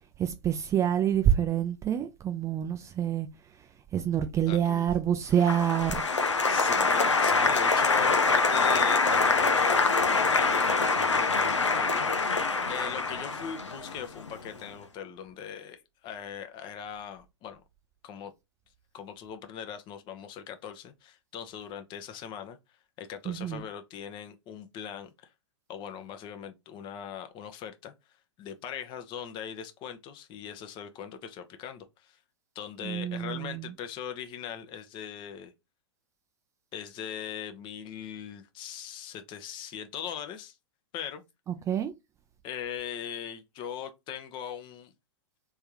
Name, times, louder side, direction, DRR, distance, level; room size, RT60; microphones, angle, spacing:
voice 1, 0.2-3.3 3.9-6.0 23.3-23.6 32.8-33.7 41.7-41.9, right 9 dB, 20° right, 0.5 m, -27 dB
voice 2, 4.5-4.9 6.4-12.4 12.7-17.6 18.0-18.3 18.9-22.6 23.0-25.1 25.7-27.9 28.4-32.2 32.5-35.5 36.7-40.6 40.9-41.2 42.4-44.9, left 8 dB, 35° left, 0.8 m, -40 dB
Applause, 5.4-14.5, left 4 dB, 90° left, 0.7 m, -25 dB
3.4 x 3.4 x 2.9 m
figure-of-eight pair, 105°, 15 cm